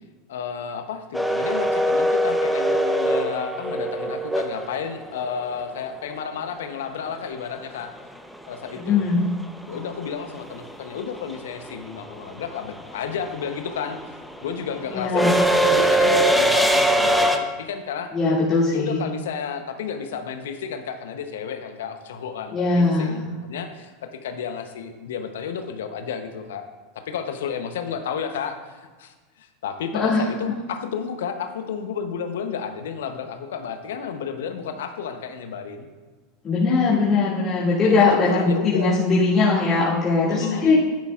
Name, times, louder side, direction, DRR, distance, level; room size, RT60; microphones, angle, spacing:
voice 1, 0.3-7.9 8.5-9.0 9.7-14.0 14.4-18.1 18.7-26.7 26.9-35.9 37.8-39.0 40.2-40.8, left 7 dB, 75° left, 7 dB, 0.9 m, -32 dB
sound 1, 1.1-5.2 7.6-7.7 9.0-9.3 9.6-17.4, right 1 dB, ahead, 0.8 m, -22 dB
voice 2, 8.9-9.2 14.9-15.4 18.1-19.0 22.5-23.2 29.9-30.3 36.4-40.8, left 3 dB, 30° left, -9 dB, 2.3 m, -20 dB
10.5 x 9.8 x 2.5 m, 1.3 s
hypercardioid pair, 90°, 0 cm